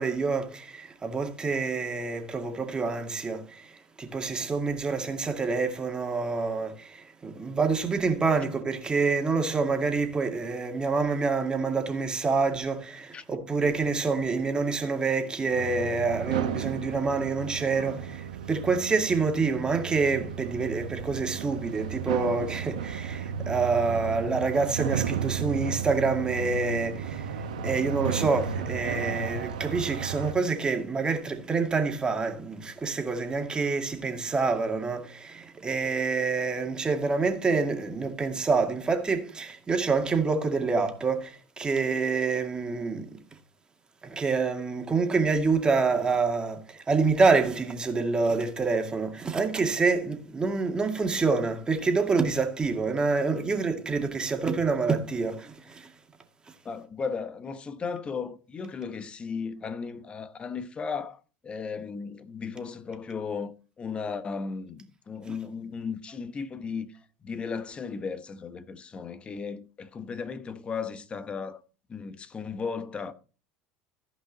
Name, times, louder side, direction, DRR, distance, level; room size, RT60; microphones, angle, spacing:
voice 1, 0.0-43.2 44.0-55.9 65.3-65.4, right 4 dB, 25° right, 2.2 m, -27 dB
sound 1, 15.5-30.3, right 8 dB, 85° right, 1.1 m, -34 dB
voice 2, 56.6-71.6 71.9-73.1, left 5 dB, 30° left, 1.2 m, -35 dB
15.0 x 5.4 x 4.1 m
hypercardioid pair, 80°, 4 cm